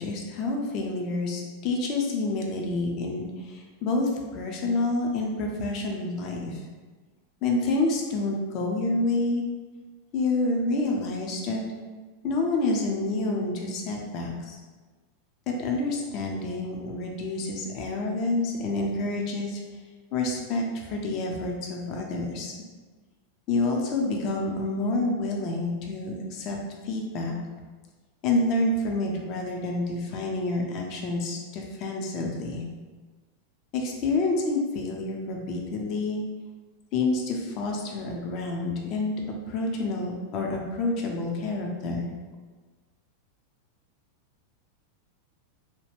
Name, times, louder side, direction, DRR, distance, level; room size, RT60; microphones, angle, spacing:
voice 1, 0.0-6.6 7.4-9.4 10.1-11.6 12.2-14.6 15.6-19.6 20.1-22.5 23.5-26.6 26.8-27.4 28.2-32.7 33.7-36.2 36.9-39.1 39.5-42.1, left 2 dB, 40° left, 0 dB, 0.6 m, -28 dB
2.8 x 2.3 x 3.3 m, 1.3 s
figure-of-eight pair, 90°, 0 cm